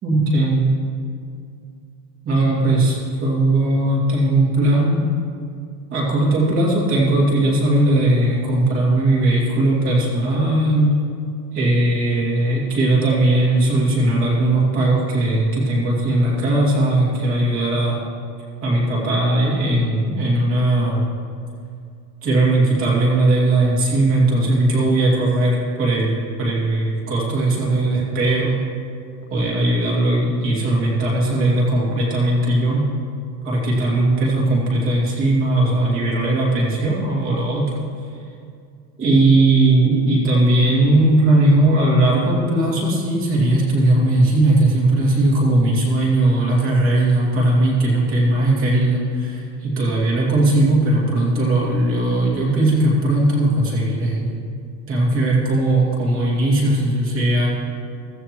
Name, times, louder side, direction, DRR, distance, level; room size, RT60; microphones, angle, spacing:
voice 1, 0.0-0.7 2.2-5.0 5.9-10.9 11.5-18.0 18.6-21.0 22.2-28.6 29.3-32.9 33.4-37.8 39.0-54.4 54.9-57.5, right 2 dB, 25° right, -4 dB, 2.7 m, -18 dB
15.5 x 13.5 x 3.1 m, 2.3 s
supercardioid pair, 170°, 50 cm